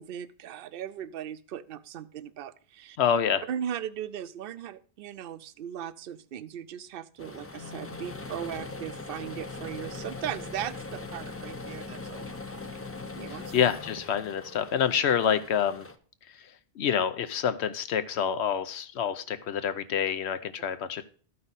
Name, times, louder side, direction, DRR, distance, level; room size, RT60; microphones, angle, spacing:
voice 1, 0.0-3.0 3.5-12.6 13.2-13.5, right 10 dB, 60° right, 16 dB, 0.7 m, -38 dB
voice 2, 3.0-3.4 13.3-15.9 16.4-21.0, left 8 dB, 75° left, 11 dB, 1.0 m, -27 dB
sound 1, 7.2-16.0, left 3 dB, 20° left, 0.3 m, -41 dB
Marimba xylophone, 7.5-10.5, left 6 dB, 50° left, 1.4 m, -52 dB
13.0 x 5.5 x 4.0 m, 0.43 s
omnidirectional pair, 1.1 m